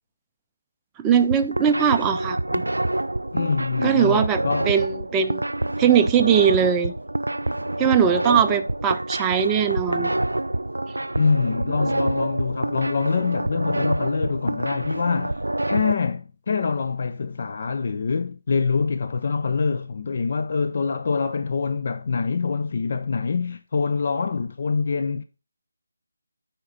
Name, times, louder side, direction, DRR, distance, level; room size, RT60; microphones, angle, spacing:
voice 1, 1.0-2.6 3.8-5.4 5.8-6.9 7.8-10.1, right 8 dB, 10° right, 0.4 m, -20 dB
sound 1, 1.2-15.9, right 1 dB, 90° right, 0.3 m, -27 dB
voice 2, 3.3-4.7 11.2-25.2, left 5 dB, 45° left, 0.4 m, -25 dB
9.7 x 4.4 x 3.9 m
figure-of-eight pair, 160°, 0 cm